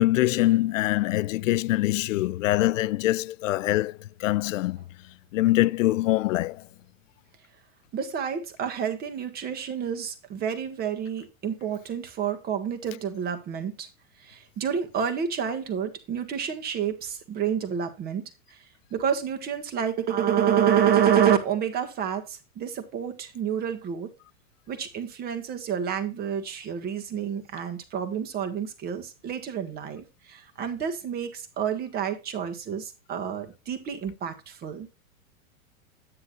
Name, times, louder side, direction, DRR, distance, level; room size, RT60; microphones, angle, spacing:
voice 1, 0.0-4.8 5.3-6.6, left 16 dB, 65° left, 0.6 m, -24 dB
voice 2, 7.9-13.9 14.2-18.3 18.9-24.1 24.7-34.9, right 8 dB, 20° right, 1.7 m, -28 dB
10.0 x 9.6 x 2.5 m
supercardioid pair, 150°, 42 cm